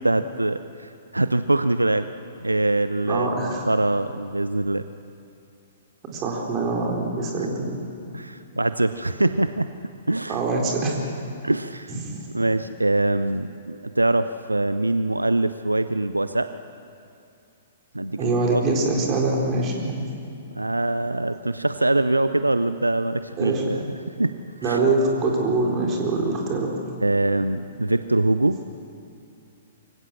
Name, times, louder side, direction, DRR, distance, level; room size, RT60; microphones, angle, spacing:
voice 1, 0.0-2.1 2.4-4.8 8.1-9.7 10.1-10.4 11.4-11.9 12.3-16.5 17.9-18.2 18.5-18.6 20.5-23.8 24.2-24.3 24.6-24.8 27.0-28.6, right 2 dB, 80° right, 12 dB, 0.6 m, -23 dB
voice 2, 3.0-3.6 6.1-7.7 10.3-11.0 11.9-12.2 18.2-19.9 23.3-23.6 24.6-26.7, right 3 dB, 25° right, 0 dB, 4.0 m, -24 dB
24.5 x 16.0 x 7.6 m, 2.5 s
figure-of-eight pair, 115°, 0 cm